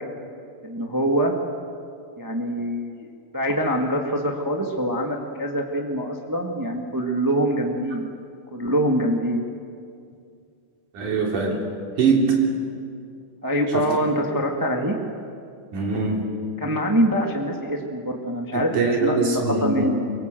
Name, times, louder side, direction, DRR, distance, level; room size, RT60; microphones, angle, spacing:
voice 1, 0.6-1.3 2.2-3.1 3.3-8.1 8.5-9.4 13.4-14.9 16.6-20.0, equal, 10° right, 1 dB, 1.1 m, -24 dB
voice 2, 10.9-11.6 12.0-12.4 13.7-13.9 15.7-16.2 18.5-19.9, right 4 dB, 65° right, 0 dB, 4.7 m, -22 dB
24.0 x 23.5 x 7.7 m, 2.4 s
omnidirectional pair, 3.8 m